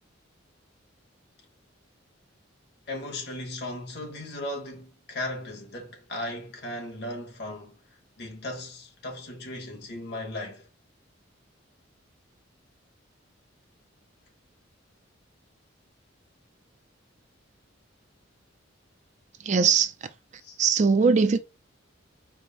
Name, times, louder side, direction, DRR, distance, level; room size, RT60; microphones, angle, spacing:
voice 1, 2.9-7.8 8.2-10.7 20.4-20.6, left 1 dB, 55° left, 1.2 m, -36 dB
voice 2, 19.4-20.1 20.6-21.4, right 5 dB, 35° right, 0.3 m, -21 dB
4.7 x 2.0 x 4.0 m
head